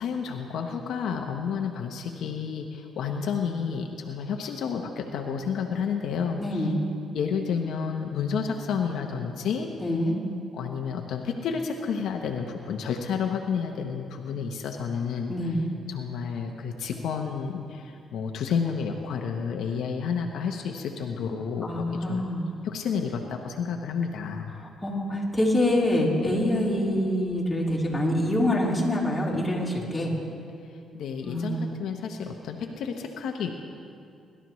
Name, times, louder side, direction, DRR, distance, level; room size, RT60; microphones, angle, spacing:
voice 1, 0.0-6.7 7.1-9.7 10.5-15.6 15.9-22.3 22.6-24.5 30.9-33.5, left 6 dB, 75° left, 3 dB, 0.9 m, -30 dB
voice 2, 6.4-6.8 9.8-10.2 15.3-15.6 21.6-22.5 24.5-30.1 31.2-31.6, left 1 dB, 15° left, -5 dB, 3.5 m, -25 dB
22.0 x 12.5 x 3.1 m, 2.5 s
cardioid pair, 90°, 0 cm